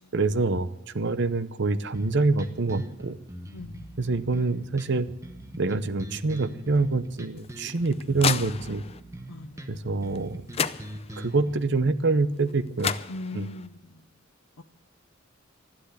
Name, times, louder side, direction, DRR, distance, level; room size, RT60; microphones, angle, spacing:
voice 1, 0.1-0.7 0.9-3.2 4.0-5.1 5.6-8.8 9.7-10.4 11.2-12.9 13.3-13.5, right 3 dB, 55° right, 13 dB, 0.8 m, -26 dB
sound 1, 1.9-11.5, equal, 15° right, 1.1 m, -42 dB
voice 2, 3.5-4.1 9.3-9.7 13.1-14.0 14.6-14.7, left 2 dB, 80° left, 5 dB, 0.8 m, -40 dB
sound 2, 7.4-9.0 10.2-10.3 10.5-11.4 12.5-12.6 12.8-13.7, left 7 dB, 30° left, 0.5 m, -31 dB
12.5 x 12.0 x 8.2 m, 0.85 s
head